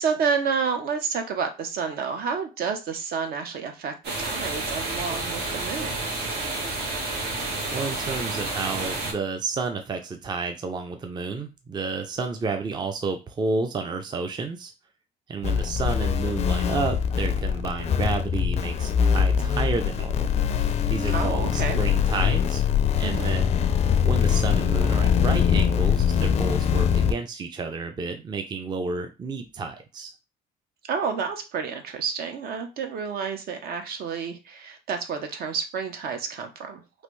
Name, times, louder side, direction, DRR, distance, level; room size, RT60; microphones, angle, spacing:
voice 1, 0.0-6.0 21.1-21.8 23.0-23.4 30.9-36.8, right 6 dB, 65° right, 5 dB, 0.8 m, -29 dB
sound 1, 4.0-9.1, right 2 dB, 80° right, 1.3 m, -30 dB
voice 2, 7.7-14.7 15.3-20.1 20.9-22.7 23.0-23.6 24.0-30.1, right 4 dB, 25° right, 6 dB, 0.4 m, -31 dB
sound 2, 15.4-27.1, left 8 dB, 40° left, 0.4 m, -23 dB
3.2 x 2.6 x 3.1 m, 0.28 s
cardioid pair, 110°, 17 cm